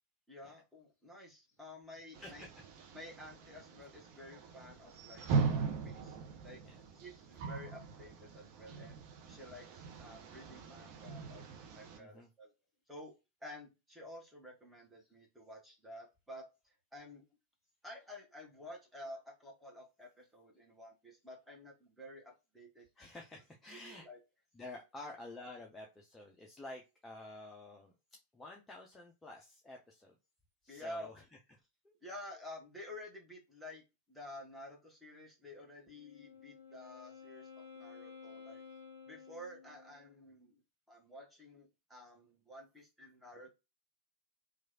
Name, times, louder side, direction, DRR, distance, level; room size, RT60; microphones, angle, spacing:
voice 1, 0.3-2.5 2.9-5.2 5.5-6.2 6.4-6.6 6.9-9.0 9.3-11.4 11.7-12.5 12.9-13.1 13.4-17.2 17.8-22.9 23.7-24.2 25.0-25.1 30.7-31.1 32.0-33.8 34.1-38.6 39.1-40.6 40.9-43.5, left 1 dB, 5° right, -1 dB, 1.1 m, -51 dB
sound 1, 2.1-12.0, right 5 dB, 45° right, 0.5 m, -40 dB
voice 2, 12.0-12.3 23.0-24.1 24.5-27.9 28.3-30.2 30.6-31.2 31.8-31.9, left 2 dB, 10° left, 0 dB, 0.6 m, -50 dB
Wind instrument woodwind instrument, 35.8-40.2, left 6 dB, 90° right, 0.7 m, -54 dB
3.0 x 2.3 x 2.5 m, 0.26 s
figure-of-eight pair, 90°, 0 cm